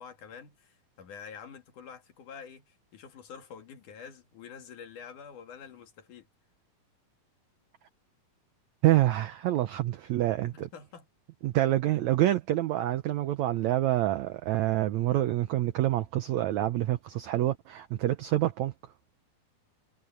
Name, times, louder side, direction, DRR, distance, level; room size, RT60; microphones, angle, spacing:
voice 1, 0.0-6.3 10.5-11.1, left 6 dB, 60° left, 3.5 m, -47 dB
voice 2, 8.8-10.7 11.4-18.7, right 14 dB, 75° right, 1.6 m, -27 dB
omnidirectional pair, 4.2 m